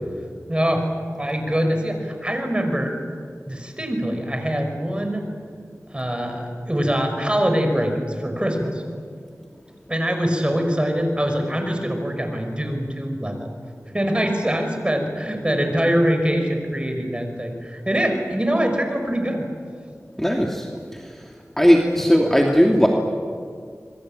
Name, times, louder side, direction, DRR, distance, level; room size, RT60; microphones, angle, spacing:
voice 1, 0.5-0.9 1.2-2.9 3.5-5.3 5.9-8.8 9.9-13.5 13.9-19.5 22.0-22.1, equal, 20° right, 4 dB, 5.5 m, -23 dB
voice 2, 20.2-20.7 20.9-21.3 21.6-22.9, equal, 5° left, 0 dB, 2.7 m, -17 dB
27.0 x 22.0 x 9.0 m, 2.1 s
wide cardioid pair, 55°, 6 cm